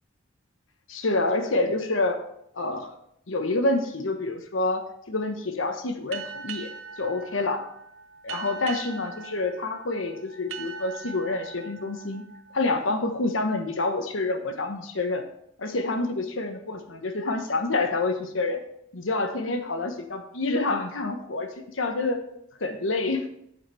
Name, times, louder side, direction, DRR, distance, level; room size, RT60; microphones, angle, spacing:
voice 1, 0.9-2.2 2.5-2.9 3.3-6.7 7.0-7.6 8.2-12.2 12.5-15.2 15.6-18.6 18.9-22.2 22.6-23.2, left 2 dB, 85° left, 6 dB, 1.1 m, -27 dB
sound 1, 6.1-13.4, right 6 dB, 85° right, 0.7 m, -41 dB
7.4 x 7.2 x 4.4 m, 0.74 s
head